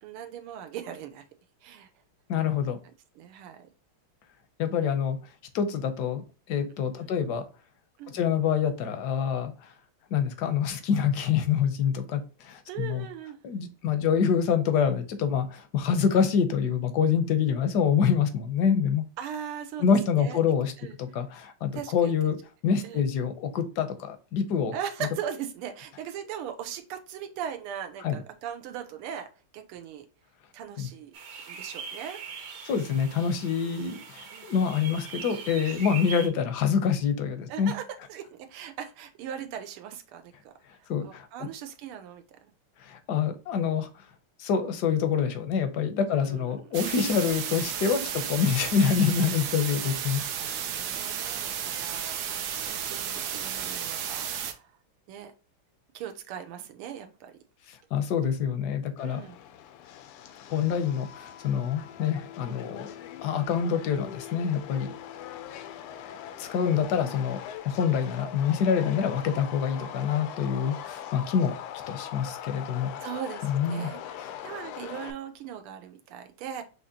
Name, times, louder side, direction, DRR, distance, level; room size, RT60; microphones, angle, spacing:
voice 1, 0.0-1.2 1.6-1.9 3.1-3.7 7.0-7.2 8.0-8.2 12.7-13.4 19.2-19.9 20.1-20.4 20.8-21.0 21.7-22.1 22.8-23.0 24.7-30.1 30.5-31.1 31.4-32.2 33.6-33.8 34.3-34.5 35.9-36.0 37.5-42.5 46.1-46.8 50.0-54.7 55.1-55.3 55.9-57.4 59.0-59.4 73.0-74.0 74.4-76.6, right 9 dB, 85° right, 6 dB, 1.5 m, -39 dB
voice 2, 2.3-2.8 4.6-5.2 5.5-7.4 8.1-9.7 10.1-13.0 13.4-19.0 19.8-20.7 21.0-22.4 22.6-24.7 28.0-28.2 30.8-30.9 32.7-37.7 40.9-41.3 42.8-43.9 44.4-50.2 50.5-50.6 57.9-59.2 60.5-62.9 63.2-64.9 66.0-66.1 66.4-67.4 67.6-71.5 71.9-72.9 73.5-73.9 74.2-74.4, left 7 dB, 65° left, 8 dB, 1.1 m, -26 dB
sound 1, 31.1-36.3, right 6 dB, 50° right, 1.3 m, -41 dB
sound 2, 46.7-54.5, right 8 dB, 70° right, 1.0 m, -33 dB
Subway metro underground, 59.0-75.1, left 10 dB, 85° left, 1.5 m, -41 dB
6.3 x 2.8 x 2.8 m, 0.34 s
omnidirectional pair, 2.4 m